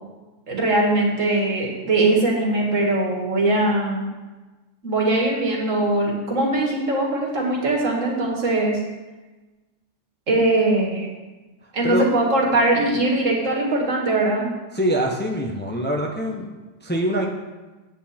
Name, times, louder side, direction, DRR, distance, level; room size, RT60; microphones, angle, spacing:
voice 1, 0.5-4.0 4.8-8.8 10.3-11.1 11.7-14.5, right 2 dB, 75° right, -2 dB, 2.3 m, -21 dB
voice 2, 14.7-16.5 16.8-17.3, right 1 dB, 10° left, 0 dB, 0.8 m, -24 dB
9.0 x 8.1 x 4.3 m, 1.2 s
omnidirectional pair, 1.3 m